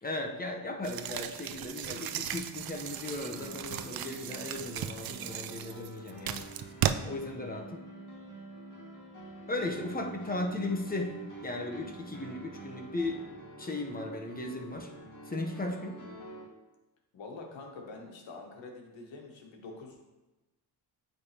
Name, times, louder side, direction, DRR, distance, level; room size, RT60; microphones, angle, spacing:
voice 1, 0.0-6.5 7.0-7.9 9.5-11.2 11.4-13.3 13.6-14.9 15.3-16.0, left 2 dB, 20° left, 2 dB, 0.9 m, -36 dB
sound 1, 0.8-6.9, right 11 dB, 50° right, 0.4 m, -36 dB
sound 2, 2.7-16.4, right 1 dB, 40° left, 1.8 m, -47 dB
voice 2, 17.1-20.2, left 3 dB, 70° left, 1 dB, 1.4 m, -46 dB
9.6 x 3.4 x 2.9 m, 1.1 s
cardioid pair, 70°, 46 cm